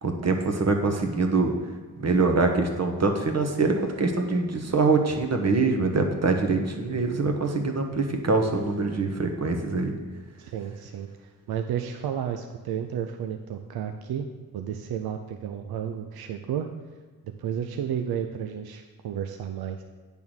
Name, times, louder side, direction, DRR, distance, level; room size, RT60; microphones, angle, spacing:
voice 1, 0.0-1.5 2.0-10.0, right 3 dB, 45° right, 4 dB, 1.2 m, -24 dB
voice 2, 10.4-11.1 11.5-14.3 14.5-16.7 17.4-19.8, right 9 dB, 75° right, 6 dB, 0.6 m, -32 dB
8.9 x 3.6 x 6.2 m, 1.4 s
cardioid pair, 60°, 37 cm